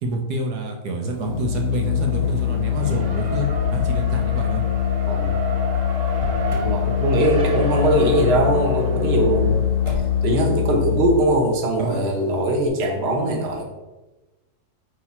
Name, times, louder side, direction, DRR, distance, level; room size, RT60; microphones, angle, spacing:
voice 1, 0.0-4.6 11.8-12.0, right 1 dB, 75° right, 2 dB, 1.4 m, -27 dB
Organ, 1.2-11.5, left 10 dB, 65° left, 0.8 m, -23 dB
Race car auto racing, 1.7-10.8, right 2 dB, 60° right, 0.4 m, -33 dB
Motor vehicle (road), 6.1-6.8 9.8-10.4, equal, 20° right, 1.2 m, -33 dB
voice 2, 6.5-9.6 10.2-13.6, right 1 dB, 45° right, 1 dB, 1.2 m, -21 dB
8.7 x 3.2 x 4.2 m, 1.1 s
omnidirectional pair, 1.7 m